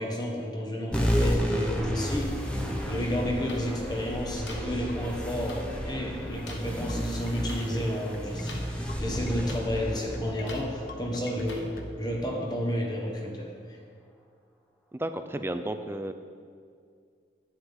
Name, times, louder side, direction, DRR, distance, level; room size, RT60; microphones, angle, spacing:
voice 1, 0.0-13.8, equal, 25° left, 0 dB, 1.3 m, -32 dB
sound 1, 0.9-11.8, equal, 5° left, 0.8 m, -31 dB
sound 2, 2.4-11.9, left 1 dB, 50° left, 0.7 m, -44 dB
sound 3, 3.5-3.6 4.5-4.6 5.5-5.6 6.5-6.6 7.5-7.6 8.5-8.6 9.5-9.6 10.5-10.6 11.5-11.6, left 3 dB, 80° left, 1.3 m, -42 dB
voice 2, 14.9-16.1, right 1 dB, 15° right, 9 dB, 0.4 m, -32 dB
11.0 x 9.6 x 3.6 m, 2.2 s
head